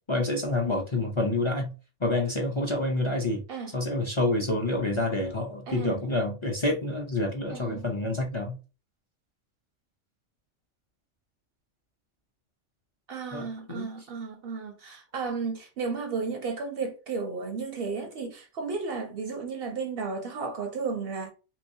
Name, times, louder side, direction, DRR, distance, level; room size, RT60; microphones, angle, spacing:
voice 1, 0.1-1.7 2.0-3.4 3.7-8.6 13.3-13.9, left 2 dB, 40° left, 0.4 m, -28 dB
voice 2, 5.7-6.0 7.5-7.9 13.1-21.3, right 4 dB, 60° right, 0.6 m, -33 dB
3.4 x 2.9 x 2.6 m
omnidirectional pair, 1.3 m